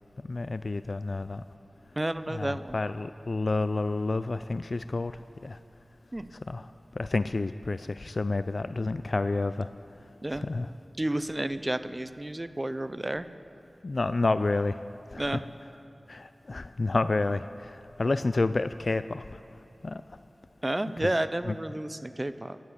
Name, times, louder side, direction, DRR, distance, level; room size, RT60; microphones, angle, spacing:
voice 1, 0.2-1.4 2.3-5.6 6.5-6.7 7.0-9.7 10.3-10.7 13.8-14.8 15.1-15.3 16.1-19.4 19.8-20.0 21.0-21.1 21.5-21.6, left 3 dB, 65° left, 13 dB, 0.3 m, -29 dB
voice 2, 2.0-2.8 6.1-6.3 10.2-10.5 11.0-13.2 15.2-15.4 20.6-22.6, right 1 dB, 30° right, 13 dB, 0.6 m, -31 dB
14.0 x 12.0 x 8.0 m, 3.0 s
wide cardioid pair, 45°, 0 cm